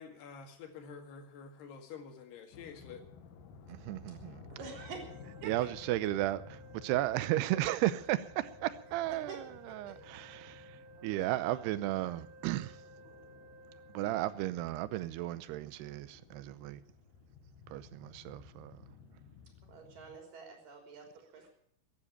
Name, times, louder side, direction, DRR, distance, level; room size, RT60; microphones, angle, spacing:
voice 1, 0.0-3.0, left 6 dB, 85° left, 4.1 m, -48 dB
sound 1, 2.5-20.2, left 6 dB, 65° left, 2.9 m, -56 dB
voice 2, 3.7-4.4 5.4-10.7 11.0-12.8 13.9-16.8 17.7-18.8, right 15 dB, 90° right, 2.8 m, -34 dB
voice 3, 4.6-5.9 9.1-9.4 9.7-10.3 10.9-11.6 13.0-13.1 19.7-21.5, right 4 dB, 60° right, 5.3 m, -49 dB
sound 2, 4.7-14.4, right 2 dB, 15° left, 6.0 m, -56 dB
15.0 x 10.5 x 8.7 m
omnidirectional pair, 4.6 m